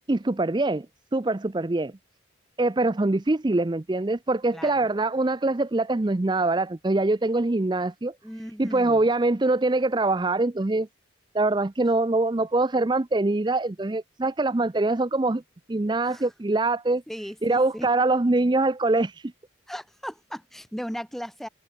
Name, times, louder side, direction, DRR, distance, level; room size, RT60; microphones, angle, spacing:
voice 1, 0.1-0.9 1.1-1.9 2.6-8.1 8.6-10.9 11.3-15.4 15.7-17.0 17.4-19.3, right 2 dB, 20° right, 0.5 m, -24 dB
voice 2, 4.5-4.9 8.2-9.0 16.0-16.3 17.1-17.9 19.7-21.5, equal, ahead, 5.4 m, -37 dB
head